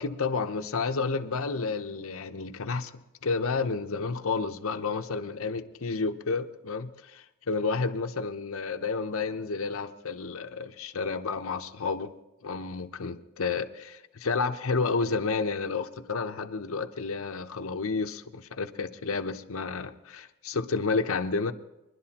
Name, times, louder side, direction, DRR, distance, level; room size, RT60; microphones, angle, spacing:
voice 1, 0.0-12.1 12.4-21.5, left 4 dB, 65° left, 0.8 m, -31 dB
22.5 x 11.5 x 2.9 m
head